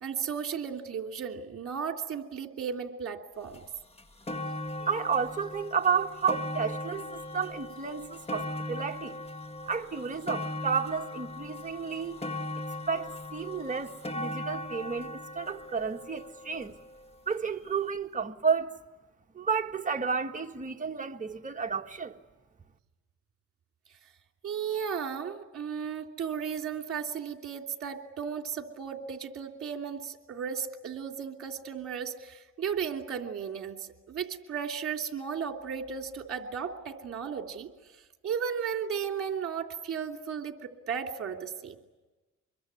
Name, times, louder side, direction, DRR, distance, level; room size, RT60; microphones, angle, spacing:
voice 1, 0.0-3.6 24.4-37.7 38.2-41.8, right 7 dB, 50° right, 2.9 m, -35 dB
sound 1, 3.5-3.6 4.0-17.2 17.9-18.0, left 2 dB, 20° left, 1.9 m, -39 dB
voice 2, 4.8-9.1 9.6-12.2 12.9-16.8 17.3-18.8 19.3-22.1, right 6 dB, 25° right, 1.7 m, -31 dB
25.5 x 22.5 x 9.6 m
cardioid pair, 90°, 30 cm